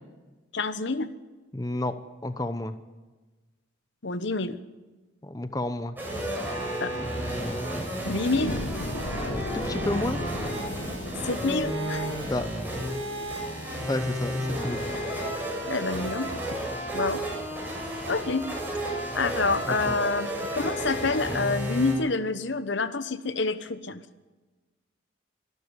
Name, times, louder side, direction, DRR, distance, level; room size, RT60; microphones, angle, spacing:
voice 1, 0.5-1.1 4.0-4.6 6.8-6.9 8.0-8.6 11.2-12.1 15.7-16.3 16.9-17.2 18.1-18.5 19.1-24.0, left 3 dB, 65° left, 12 dB, 1.1 m, -27 dB
voice 2, 1.5-2.7 5.2-6.0 9.3-10.2 12.3-12.5 13.9-14.9 19.9-20.0, left 1 dB, 20° left, 10 dB, 0.8 m, -31 dB
sound 1, 6.0-21.9, equal, 10° right, 7.6 m, -32 dB
sound 2, 8.3-19.3 19.8-19.9, left 1 dB, 85° left, 1.5 m, -40 dB
25.5 x 12.5 x 9.8 m, 1.2 s
head